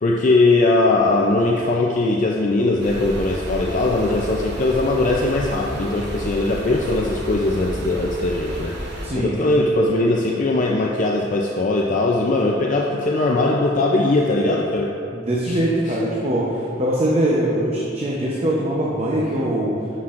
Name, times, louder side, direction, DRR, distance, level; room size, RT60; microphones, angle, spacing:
voice 1, 0.0-14.9 15.5-15.6, left 2 dB, 40° left, -1 dB, 0.5 m, -20 dB
sound 1, 2.8-9.1, equal, 60° right, 0.9 m, -31 dB
voice 2, 9.0-9.3 15.1-19.8, right 1 dB, 35° right, -5 dB, 0.8 m, -22 dB
11.0 x 6.0 x 2.5 m, 2.6 s
head